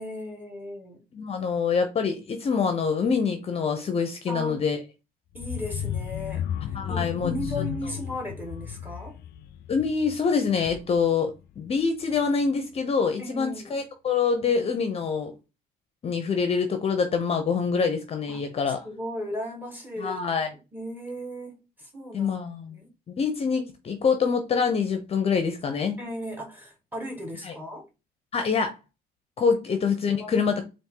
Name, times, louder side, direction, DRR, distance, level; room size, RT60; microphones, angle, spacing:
voice 1, 0.0-1.0 4.3-4.6 5.3-6.5 6.9-9.2 13.2-13.7 18.3-18.4 18.8-20.2 20.5-22.9 26.0-27.9 29.7-29.8 30.1-30.4, equal, 10° right, 1.6 m, -36 dB
voice 2, 1.1-4.8 6.6-7.3 9.7-15.3 16.0-18.8 20.0-20.5 22.1-22.8 23.1-26.0 27.4-27.5 28.3-28.7 29.4-30.6, left 5 dB, 35° left, 0.7 m, -25 dB
sound 1, 5.3-11.1 11.5-11.8 12.1-12.2, left 10 dB, 70° left, 0.4 m, -34 dB
4.2 x 2.6 x 3.8 m
cardioid pair, 110°, 17 cm